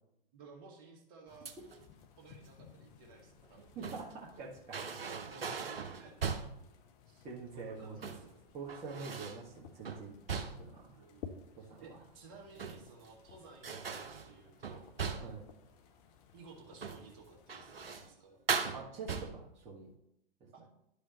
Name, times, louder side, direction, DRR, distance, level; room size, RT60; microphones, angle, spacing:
voice 1, 0.3-1.5 2.2-3.7 5.2-6.4 7.1-7.3 7.5-8.4 10.9-14.9 16.3-18.4 20.5-20.6, right 3 dB, 40° right, 0 dB, 1.9 m, -56 dB
sound 1, 1.3-18.1, left 7 dB, 40° left, 0.8 m, -58 dB
sound 2, 1.4-1.9 3.4-4.2 4.7-6.7 7.8-8.3 8.7-9.5 9.8-10.8 12.3-13.1 13.6-15.5 16.7-17.1 17.5-18.1 18.5-19.6, right 5 dB, 80° right, 0.8 m, -39 dB
voice 2, 3.7-4.8 7.2-8.0 8.5-10.1 10.6-11.0 11.6-12.0 15.2-15.4 18.7-19.9, right 4 dB, 25° right, -5 dB, 1.6 m, -45 dB
12.0 x 5.0 x 3.0 m, 0.81 s
figure-of-eight pair, 100°, 29 cm